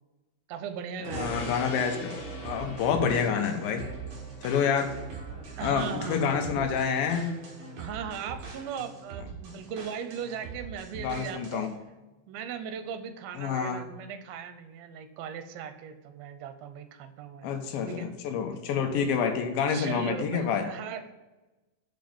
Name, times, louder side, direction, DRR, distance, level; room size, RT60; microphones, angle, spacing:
voice 1, 0.5-1.8 5.6-6.7 7.8-11.7 12.3-18.1 19.7-21.1, right 7 dB, 80° right, 9 dB, 2.4 m, -38 dB
Gong, 1.0-10.8, left 2 dB, 65° left, 2.0 m, -46 dB
voice 2, 1.1-3.8 4.4-5.0 5.6-7.3 11.0-11.7 13.4-13.8 17.4-20.6, left 6 dB, 80° left, 5 dB, 2.6 m, -28 dB
sound 1, 1.1-11.7, right 5 dB, 60° right, 1.9 m, -42 dB
5.9 x 5.2 x 5.2 m, 1.1 s
omnidirectional pair, 4.3 m